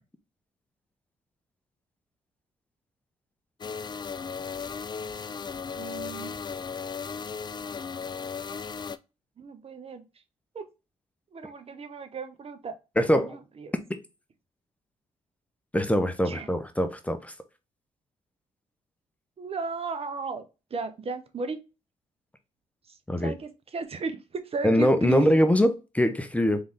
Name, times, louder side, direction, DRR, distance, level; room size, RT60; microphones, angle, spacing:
sound 1, 3.6-9.0, left 6 dB, 30° left, 0.4 m, -36 dB
voice 1, 5.8-6.3 9.4-10.0 10.5-10.7 11.3-12.7 13.1-13.7 16.3-16.5 19.4-20.4 20.7-21.6 22.9-25.3, right 4 dB, 45° right, 0.7 m, -35 dB
voice 2, 13.0-13.4 15.7-17.3 23.1-23.3 24.6-26.6, equal, 10° left, 0.8 m, -23 dB
3.9 x 3.6 x 3.5 m
supercardioid pair, 60°, 14 cm